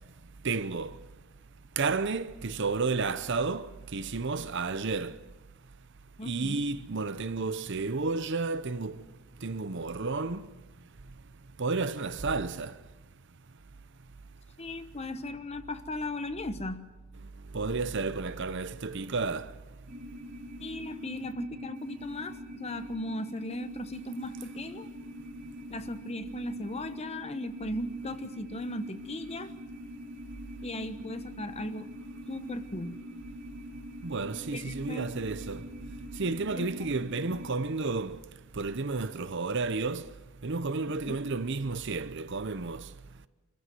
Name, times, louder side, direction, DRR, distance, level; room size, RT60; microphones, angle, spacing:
voice 1, 0.4-1.0 1.8-5.2 6.2-8.9 9.4-10.5 11.6-12.7 17.5-19.5 34.0-35.6 36.2-38.2 38.6-40.1 40.4-42.8, right 4 dB, 55° right, 0.8 m, -31 dB
voice 2, 6.2-6.6 14.6-16.8 20.6-24.9 25.7-29.5 30.6-31.9 32.3-33.0 34.5-35.1 36.6-36.9 41.1-41.2, left 1 dB, 30° left, 1.1 m, -37 dB
sound 1, 19.9-37.6, equal, 35° right, 2.1 m, -44 dB
25.5 x 15.0 x 9.3 m
head